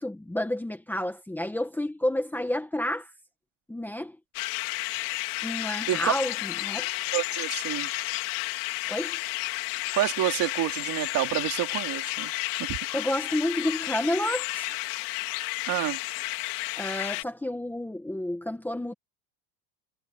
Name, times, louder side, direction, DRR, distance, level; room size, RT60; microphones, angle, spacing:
voice 1, 0.0-3.1 3.7-4.2 5.4-6.9 8.9-9.2 12.9-14.7 16.8-18.9, left 1 dB, 5° left, 1.5 m, -30 dB
sound 1, 4.3-17.2, left 25 dB, 75° left, 3.9 m, -32 dB
voice 2, 7.1-7.9 9.9-12.3 12.6-12.8 15.7-16.0, right 15 dB, 45° right, 2.9 m, -28 dB
cardioid pair, 160°, 46 cm